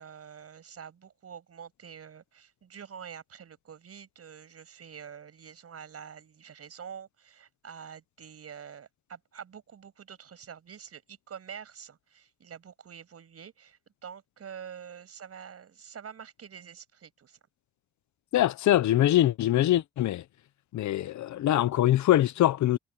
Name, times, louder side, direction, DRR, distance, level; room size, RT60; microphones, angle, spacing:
voice 1, 0.0-17.4, right 7 dB, 50° right, 6.5 m, -46 dB
voice 2, 18.3-20.2 20.7-22.8, left 13 dB, 70° left, 1.0 m, -23 dB
cardioid pair, 90°, 30 cm